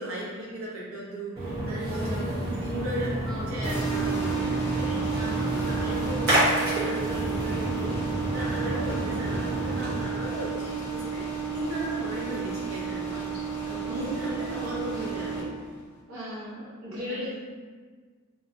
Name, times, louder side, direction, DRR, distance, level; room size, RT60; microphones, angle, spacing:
voice 1, 0.0-2.3 2.6-7.9 8.3-11.2 11.5-13.1 13.9-15.5, right 1 dB, 70° right, -5 dB, 0.5 m, -36 dB
Splash splatter, 1.4-10.0, right 1 dB, 50° right, 1.2 m, -29 dB
voice 2, 1.7-2.5 3.2-4.0 5.1-5.8 13.1-13.3 13.6-14.3 16.1-17.3, left 1 dB, 85° right, -9 dB, 1.0 m, -39 dB
sound 1, 3.6-15.4, right 6 dB, 10° left, 0.6 m, -32 dB
3.1 x 2.5 x 2.6 m, 1.5 s
head